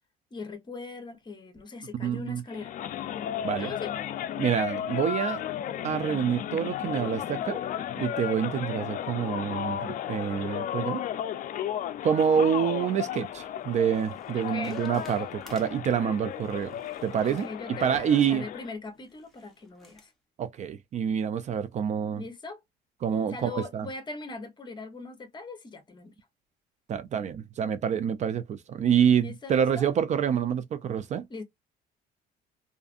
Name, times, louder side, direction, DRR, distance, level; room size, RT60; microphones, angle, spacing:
voice 1, 0.3-2.7 3.6-3.9 14.3-14.8 17.2-20.1 22.2-22.6 23.3-26.1 29.2-29.9 31.3-31.4, left 3 dB, 25° left, 0.9 m, -40 dB
voice 2, 2.0-2.4 3.4-3.7 4.4-5.4 5.8-7.6 8.0-11.0 12.0-16.8 17.0-17.5 17.8-18.4 20.4-22.2 23.0-23.9 26.9-31.3, right 8 dB, 45° right, 0.4 m, -27 dB
sound 1, 2.5-18.7, left 10 dB, 50° left, 0.4 m, -34 dB
sound 2, 13.0-20.1, left 1 dB, ahead, 1.0 m, -54 dB
2.5 x 2.4 x 2.4 m
cardioid pair, 110°, 17 cm